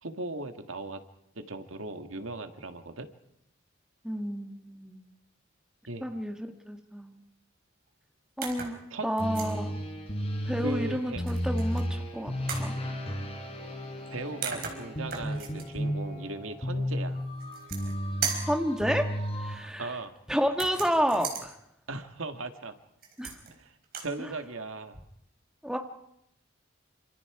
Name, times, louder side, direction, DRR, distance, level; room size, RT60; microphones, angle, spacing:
voice 1, 0.0-1.0 1.4-3.1 5.9-6.1 8.9-9.1 10.6-11.2 14.1-17.2 19.8-20.1 21.9-22.8 23.6-23.7 24.0-25.0, right 2 dB, 90° right, 7 dB, 1.8 m, -38 dB
voice 2, 4.0-5.0 6.0-6.4 6.7-7.2 8.4-9.7 10.4-12.7 18.4-19.1 19.4-19.9 20.3-21.6 23.2-23.4 24.2-24.3 25.6-25.8, equal, 5° right, 4 dB, 1.7 m, -30 dB
sound 1, 8.4-8.8 9.2-9.6 11.3-11.8 12.5-12.7 14.1-14.2 14.4-15.6 17.4-17.9 18.2-18.6 20.5-21.5 23.0-23.5 23.8-24.1, right 6 dB, 50° right, 4.6 m, -36 dB
sound 2, 9.2-19.6, equal, 30° left, 4.4 m, -33 dB
27.5 x 26.5 x 4.9 m, 0.80 s
head